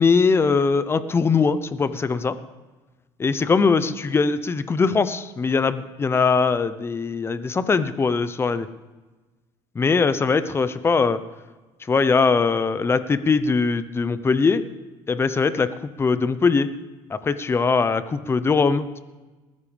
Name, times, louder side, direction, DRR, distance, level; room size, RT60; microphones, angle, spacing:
voice 1, 0.0-2.4 3.2-8.7 9.7-11.2 11.9-14.6 15.1-15.7 16.0-16.7 17.1-19.0, left 4 dB, 20° left, 13 dB, 0.8 m, -21 dB
20.5 x 13.5 x 3.5 m, 1.2 s
cardioid pair, 110°, 11 cm